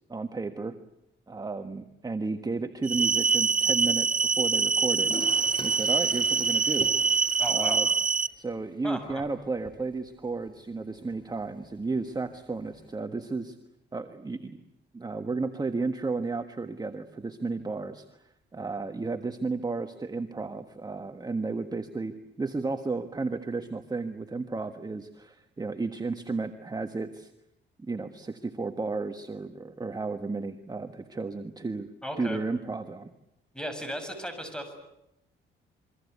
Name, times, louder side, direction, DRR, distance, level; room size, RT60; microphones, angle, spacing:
voice 1, 0.1-0.7 1.3-6.9 7.5-7.9 8.4-13.6 13.9-14.6 14.9-18.0 18.5-27.3 27.8-31.9 32.2-33.1, right 3 dB, 20° right, 8 dB, 1.4 m, -33 dB
sound 1, 2.8-8.3, right 5 dB, 45° right, 1.1 m, -25 dB
Toilet flush, 5.0-12.9, left 1 dB, 25° left, 5.5 m, -46 dB
voice 2, 7.4-7.8 8.8-9.2 32.0-32.4 33.5-34.7, equal, 5° left, 8 dB, 7.2 m, -36 dB
27.5 x 23.5 x 8.3 m, 0.83 s
cardioid pair, 90°, 20 cm